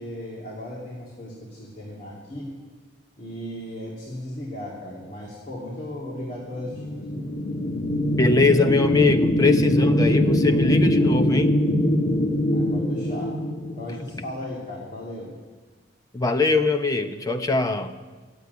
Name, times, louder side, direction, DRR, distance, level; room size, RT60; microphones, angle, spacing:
voice 1, 0.0-2.5 3.2-7.3 12.5-13.4 13.7-15.3, left 1 dB, 45° left, -5 dB, 2.7 m, -36 dB
sound 1, 6.6-14.2, left 1 dB, 80° left, 1.4 m, -22 dB
voice 2, 8.2-11.5 16.1-17.9, left 3 dB, 20° left, 6 dB, 0.7 m, -22 dB
13.0 x 8.2 x 9.4 m, 1.4 s
head